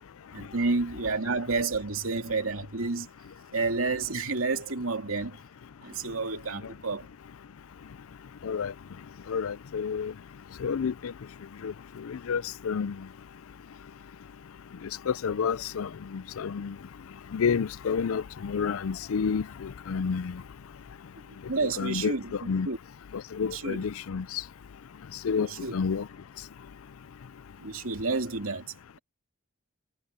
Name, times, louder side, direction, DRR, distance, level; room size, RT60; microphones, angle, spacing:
voice 1, 0.3-3.1 3.5-5.4 5.8-7.1 21.5-22.8 23.5-23.8 25.4-25.7 27.6-28.7, right 3 dB, 80° right, 2.6 m, -30 dB
voice 2, 9.3-10.1 10.6-11.1 11.6-11.7 12.0-12.9 15.1-16.7 17.3-20.4 21.8-22.1 22.5-22.7 23.4-24.2 25.2-25.5 25.7-26.0, left 6 dB, 80° left, 0.4 m, -29 dB
head